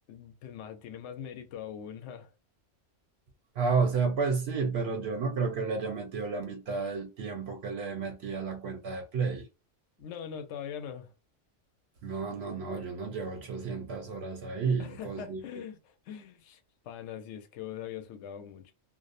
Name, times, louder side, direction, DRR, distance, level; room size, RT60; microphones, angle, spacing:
voice 1, 0.1-2.3 10.0-11.1 14.8-16.6 16.8-18.7, left 8 dB, 70° left, 0.9 m, -42 dB
voice 2, 3.6-9.5 12.0-15.4, right 5 dB, 65° right, 0.7 m, -31 dB
2.5 x 2.0 x 2.5 m
omnidirectional pair, 1.3 m